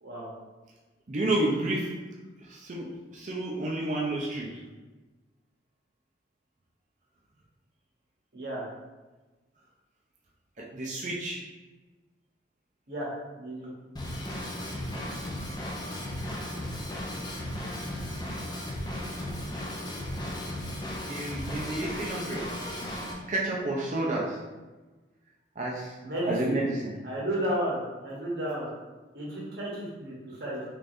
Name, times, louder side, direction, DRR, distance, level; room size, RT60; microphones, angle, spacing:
voice 1, 1.1-1.9 2.4-4.6 10.6-11.4 21.1-22.5 23.3-24.4 25.6-25.9 26.2-26.9, right 1 dB, 40° right, -3 dB, 0.5 m, -30 dB
voice 2, 8.3-8.6 12.9-13.7 18.4-18.5 26.0-26.6 27.0-28.7 29.1-30.6, right 1 dB, 55° right, -4 dB, 0.9 m, -33 dB
Drum kit / Drum, 14.0-23.1, left 1 dB, 20° left, 0.4 m, -35 dB
3.4 x 3.2 x 2.6 m, 1.2 s
head